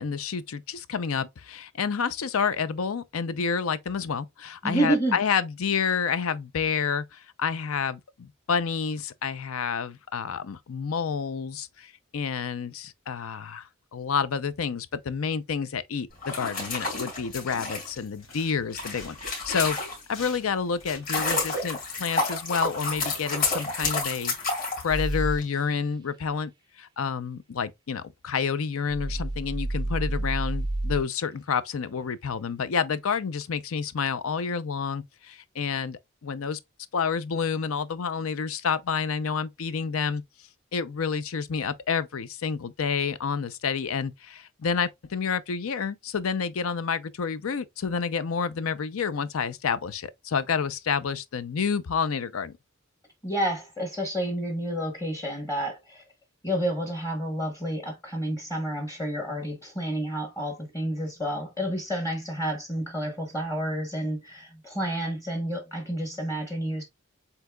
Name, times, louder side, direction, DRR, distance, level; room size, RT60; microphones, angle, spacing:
voice 1, 0.0-19.8 20.1-26.5 26.8-36.6 36.9-40.2 40.7-52.6, left 6 dB, 85° left, 0.5 m, -29 dB
voice 2, 4.6-5.2 53.2-56.0 56.4-66.8, right 1 dB, 15° left, 1.0 m, -30 dB
sound 1, 16.1-20.3 20.7-25.4, left 3 dB, 45° left, 3.0 m, -30 dB
sound 2, 18.2-19.3 19.6-23.1 23.4-23.7 24.0-24.1, left 3 dB, 70° left, 3.1 m, -46 dB
sound 3, 24.9-25.4 28.9-31.0, right 1 dB, 20° right, 0.4 m, -29 dB
7.9 x 2.8 x 2.3 m
head